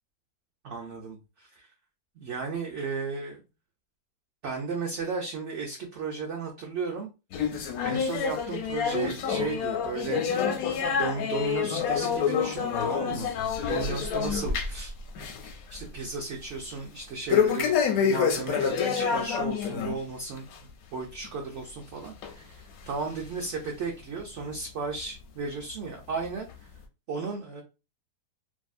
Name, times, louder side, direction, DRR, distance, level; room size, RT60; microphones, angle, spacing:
voice 1, 0.6-1.7 2.2-3.4 4.4-7.1 7.8-10.6 10.8-13.3 13.6-14.9 15.7-26.5 27.1-27.6, right 4 dB, 75° right, 0 dB, 0.6 m, -35 dB
sound 1, 7.3-14.9 15.2-15.5 15.9-16.0 17.3-20.0 20.4-20.6 21.2-21.3 22.2-22.3 23.1-23.2, left 7 dB, 70° left, 0.9 m, -27 dB
2.6 x 2.5 x 2.3 m, 0.28 s
omnidirectional pair, 1.8 m